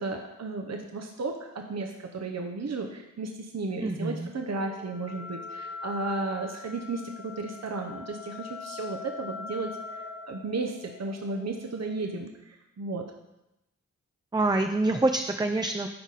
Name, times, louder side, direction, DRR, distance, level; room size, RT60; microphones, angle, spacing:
voice 1, 0.0-13.0, right 3 dB, 50° right, 3 dB, 0.8 m, -34 dB
sound 1, 3.5-12.2, left 5 dB, 25° left, 1.3 m, -42 dB
voice 2, 3.8-4.3 14.3-15.9, right 2 dB, 15° right, 5 dB, 0.4 m, -26 dB
11.0 x 3.9 x 4.1 m, 0.93 s
cardioid pair, 40°, 33 cm